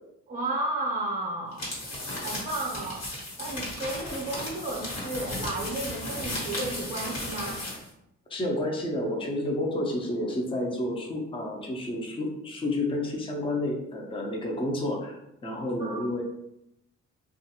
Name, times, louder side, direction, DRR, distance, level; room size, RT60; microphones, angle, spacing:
voice 1, 0.3-1.7 2.2-3.1 3.4-7.6 15.8-16.2, right 2 dB, 25° right, -3 dB, 0.7 m, -33 dB
sound 1, 1.5-7.9, left 1 dB, 55° left, 1.3 m, -35 dB
voice 2, 8.3-15.2 15.4-16.2, left 1 dB, 20° left, 0 dB, 0.6 m, -30 dB
2.5 x 2.4 x 2.8 m, 0.82 s
cardioid pair, 90°, 30 cm